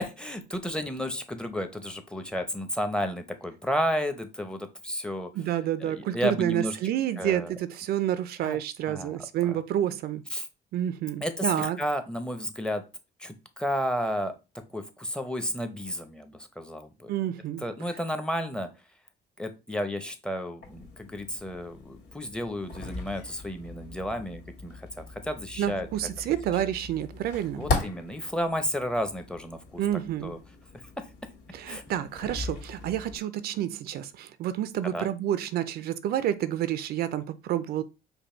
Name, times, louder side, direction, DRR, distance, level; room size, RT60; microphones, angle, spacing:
voice 1, 0.0-5.3 5.8-6.8 7.2-7.5 8.4-8.6 8.8-9.6 10.3-10.5 11.2-12.8 13.2-14.4 14.7-17.1 17.6-18.7 19.4-25.9 26.3-26.4 27.6-29.8 30.2-30.4 30.7-31.0 31.6-31.8 34.9-35.1, equal, 5° left, 0.8 m, -32 dB
voice 2, 5.4-10.2 10.7-11.8 17.1-17.6 25.6-27.7 29.8-30.4 31.5-37.8, right 11 dB, 65° right, 0.5 m, -29 dB
sound 1, 20.6-33.2, left 3 dB, 75° left, 2.0 m, -38 dB
5.3 x 2.3 x 4.3 m
cardioid pair, 110°, 17 cm